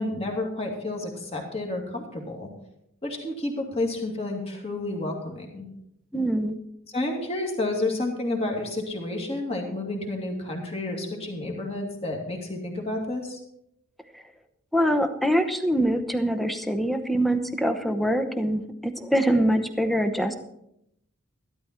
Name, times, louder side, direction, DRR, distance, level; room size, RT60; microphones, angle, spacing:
voice 1, 0.0-2.5 3.0-5.7 6.9-13.4, left 2 dB, 30° left, 1 dB, 2.4 m, -30 dB
voice 2, 6.1-6.5 14.1-14.2 14.7-20.4, equal, ahead, 7 dB, 0.8 m, -24 dB
13.0 x 12.5 x 4.4 m, 0.78 s
head